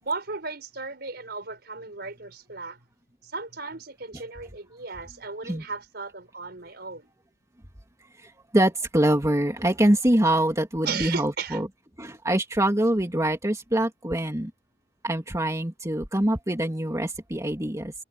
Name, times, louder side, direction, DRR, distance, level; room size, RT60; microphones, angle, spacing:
voice 1, 0.0-2.8 3.2-7.1 10.9-11.7, right 4 dB, 60° right, 5.5 m, -35 dB
voice 2, 8.2-11.7 12.0-14.5 15.0-17.9, right 1 dB, 20° right, 2.5 m, -24 dB
head